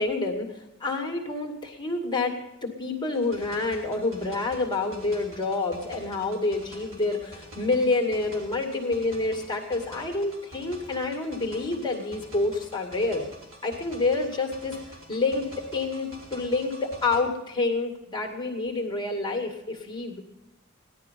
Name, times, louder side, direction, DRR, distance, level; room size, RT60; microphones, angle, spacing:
voice 1, 0.0-2.4 2.6-13.2 13.6-20.2, left 3 dB, 20° left, 1 dB, 2.1 m, -28 dB
sound 1, 3.1-17.2, equal, 90° right, 3.3 m, -47 dB
16.0 x 11.5 x 5.7 m, 0.95 s
head